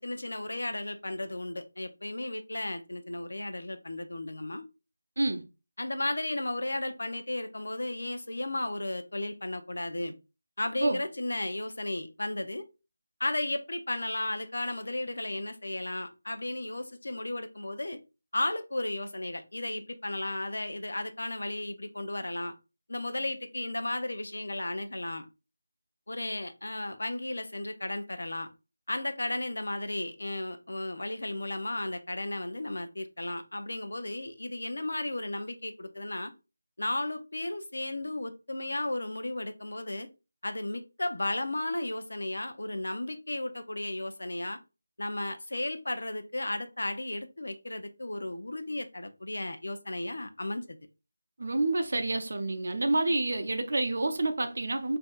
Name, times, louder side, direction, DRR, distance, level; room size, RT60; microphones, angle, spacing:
voice 1, 0.0-4.6 5.8-10.1 10.6-12.6 13.2-18.0 18.3-22.5 22.9-25.3 26.1-28.5 28.9-36.3 36.8-40.1 40.4-44.6 45.0-50.8, left 1 dB, 70° left, 0.6 m, -34 dB
voice 2, 51.4-55.0, right 2 dB, 60° right, 0.6 m, -28 dB
4.3 x 2.7 x 2.4 m
figure-of-eight pair, 170°, 0 cm